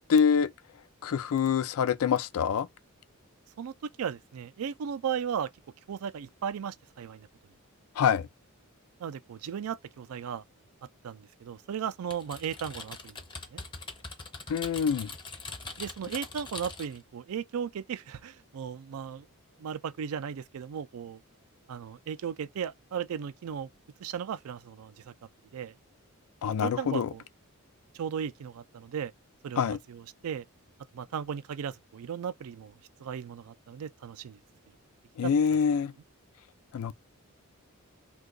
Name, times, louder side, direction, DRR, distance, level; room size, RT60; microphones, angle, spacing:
voice 1, 0.1-0.5 1.0-2.7 8.0-8.3 14.5-15.1 26.4-27.1 29.6-29.8 35.2-35.9 36.7-36.9, left 7 dB, 70° left, 0.4 m, -25 dB
voice 2, 4.0-5.5 5.9-7.3 9.0-10.4 11.0-13.1 13.5-13.6 15.8-19.3 19.6-21.2 21.7-23.7 24.0-25.1 25.5-25.7 26.5-27.2 27.9-29.1 29.4-29.6 29.9-30.4 30.9-32.7 33.0-34.4 35.2-35.3, right 8 dB, 75° right, 0.4 m, -36 dB
Typing, 12.1-17.0, left 3 dB, 20° left, 0.6 m, -42 dB
2.7 x 2.3 x 3.7 m
head